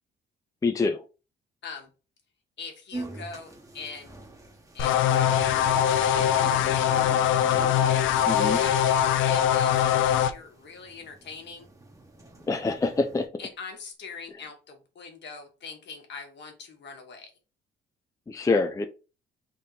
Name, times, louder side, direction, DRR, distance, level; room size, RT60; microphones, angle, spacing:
voice 1, 0.6-1.0 8.3-8.6 12.5-13.3 18.3-18.8, left 3 dB, 15° left, 8 dB, 0.4 m, -25 dB
voice 2, 2.6-4.2 4.7-7.1 8.4-11.7 13.4-17.3, left 5 dB, 65° left, 3 dB, 1.4 m, -42 dB
sound 1, 2.9-13.3, right 2 dB, 15° right, 1.1 m, -45 dB
sound 2, 4.8-10.3, left 9 dB, 80° left, 0.5 m, -22 dB
3.7 x 2.6 x 4.2 m, 0.32 s
cardioid pair, 90°, 20 cm